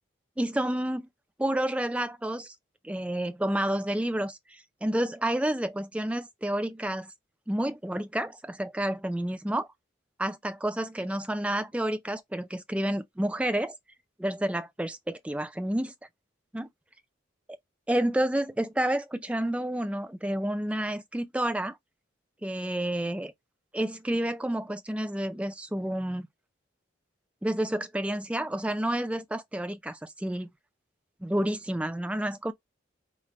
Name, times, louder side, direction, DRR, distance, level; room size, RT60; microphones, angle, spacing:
voice 1, 0.4-1.1 1.4-2.6 2.8-7.1 7.5-9.7 10.2-13.8 14.2-15.9 16.5-16.7 17.9-21.8 22.4-23.3 23.7-26.3 27.4-30.5 31.2-32.5, right 1 dB, 5° right, 0.3 m, -30 dB
4.9 x 2.1 x 3.0 m
head